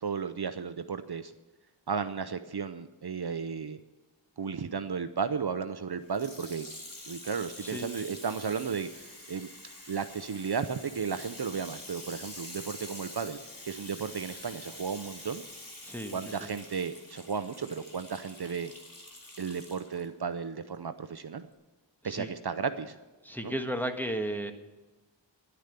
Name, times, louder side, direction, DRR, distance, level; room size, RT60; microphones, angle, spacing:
voice 1, 0.0-1.3 1.9-3.8 4.4-6.7 7.1-9.5 9.9-13.4 13.6-15.4 16.1-18.7 19.4-21.5 22.0-23.0 23.4-23.6, right 6 dB, 55° right, 11 dB, 0.7 m, -34 dB
Water tap faucet / Sink (filling or washing), 6.0-20.0 20.7-20.8, left 1 dB, 45° left, 2.5 m, -47 dB
voice 2, 15.8-16.5 22.0-22.3 23.2-24.5, right 1 dB, 5° left, 5 dB, 1.4 m, -34 dB
11.0 x 10.0 x 6.8 m, 1.2 s
wide cardioid pair, 40°, 46 cm